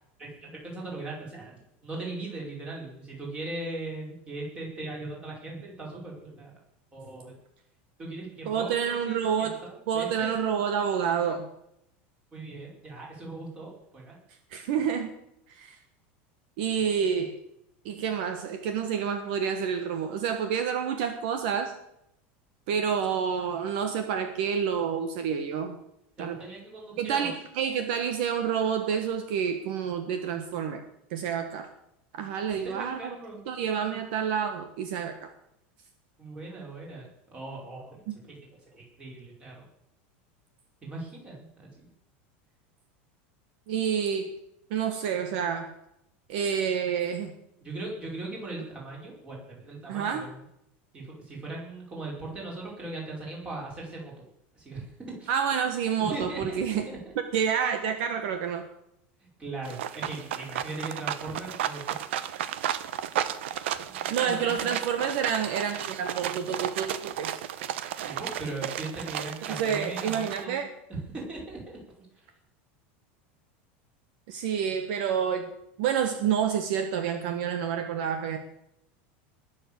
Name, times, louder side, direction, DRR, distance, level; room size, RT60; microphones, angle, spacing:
voice 1, 0.2-6.5 6.9-7.3 8.0-10.3 12.3-14.2 26.2-27.3 32.6-33.4 33.9-34.0 36.2-38.4 38.7-39.6 40.8-41.9 47.6-50.4 50.9-54.1 54.6-55.3 56.1-57.1 59.4-62.0 63.8-64.8 68.0-70.6 70.9-72.1, right 2 dB, 15° right, -3 dB, 5.1 m, -39 dB
voice 2, 8.4-9.6 9.9-11.5 14.5-15.1 15.5-15.8 16.6-17.4 17.8-21.7 22.7-25.8 26.2-26.4 27.0-30.8 31.1-31.7 32.1-33.1 33.5-35.3 38.1-38.2 43.7-44.3 44.7-45.7 46.3-47.3 49.9-50.2 55.3-56.9 57.3-58.7 64.1-67.4 69.5-70.7 74.3-78.4, right 7 dB, 60° right, 7 dB, 1.5 m, -28 dB
sound 1, 59.6-70.4, right 11 dB, 85° right, 1.0 m, -33 dB
20.5 x 7.3 x 6.8 m, 0.79 s
supercardioid pair, 170°, 6 cm